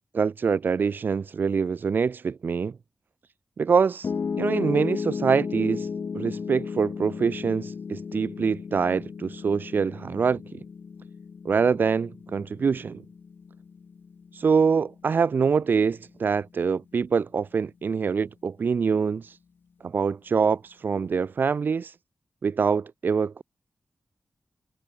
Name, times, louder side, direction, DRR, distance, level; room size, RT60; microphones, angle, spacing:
voice 1, 0.0-2.7 3.6-4.1 4.4-5.9 6.1-10.4 11.4-13.0 14.3-19.4 19.8-21.9 22.4-23.4, right 5 dB, 65° right, 1.2 m, -25 dB
Piano, 4.0-16.2, left 5 dB, 70° left, 6.1 m, -35 dB
wide cardioid pair, 120°, 4 cm